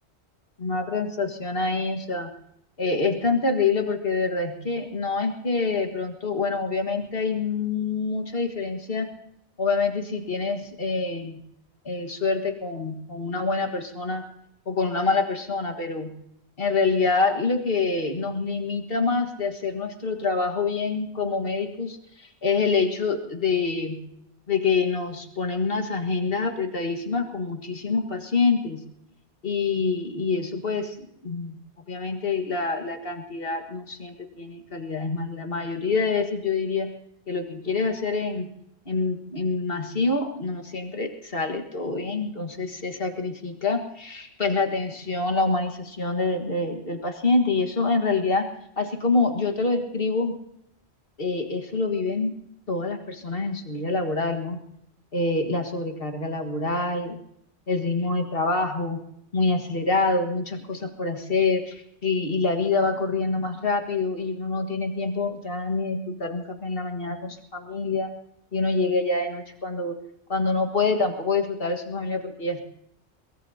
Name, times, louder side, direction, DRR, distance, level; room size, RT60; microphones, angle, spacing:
voice 1, 0.6-2.3 2.8-9.1 9.6-11.4 11.9-14.2 14.7-16.1 16.6-24.0 24.5-28.8 29.4-31.6 31.9-36.9 37.3-38.5 38.9-48.5 48.8-50.3 51.2-52.3 52.7-54.6 55.1-57.2 57.7-59.0 59.3-68.1 68.5-70.0 70.3-72.6, left 3 dB, 55° left, 4 dB, 2.0 m, -26 dB
23.0 x 21.0 x 2.9 m, 0.74 s
omnidirectional pair, 1.1 m